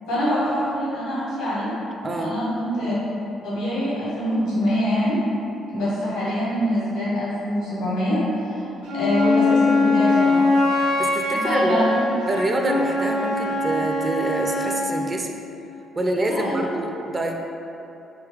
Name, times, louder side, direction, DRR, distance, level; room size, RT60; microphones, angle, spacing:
voice 1, 0.1-1.7 2.1-2.9 3.4-5.1 5.7-8.2 8.4-10.4 11.3-12.1 16.3-16.7, equal, 75° left, -9 dB, 1.4 m, -24 dB
voice 2, 2.0-2.3 10.7-11.8 12.3-15.3 15.9-17.3, right 1 dB, 30° right, 2 dB, 0.4 m, -26 dB
Wind instrument woodwind instrument, 8.8-14.9, left 2 dB, 85° right, 0.9 m, -22 dB
3.7 x 2.8 x 3.1 m, 2.9 s
figure-of-eight pair, 45°, 0 cm